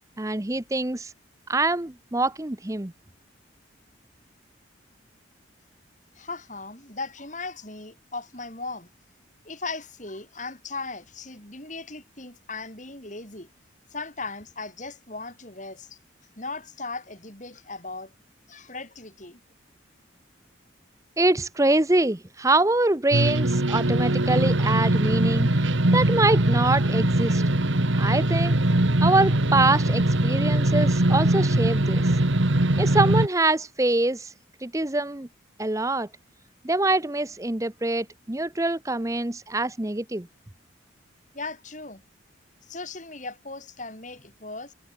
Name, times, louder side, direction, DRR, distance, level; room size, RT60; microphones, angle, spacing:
voice 1, 0.2-1.1 1.5-2.9 21.2-25.7 25.9-27.4 28.0-28.6 29.0-32.1 32.8-34.3 34.6-35.3 35.6-36.1 36.6-40.3, right 2 dB, 15° right, 0.8 m, -24 dB
voice 2, 6.2-8.9 9.5-13.5 13.9-16.0 16.4-18.1 18.5-19.4 41.3-42.0 42.6-44.7, left 3 dB, 40° left, 7.1 m, -37 dB
sound 1, 23.1-33.3, right 1 dB, 75° right, 1.9 m, -21 dB
head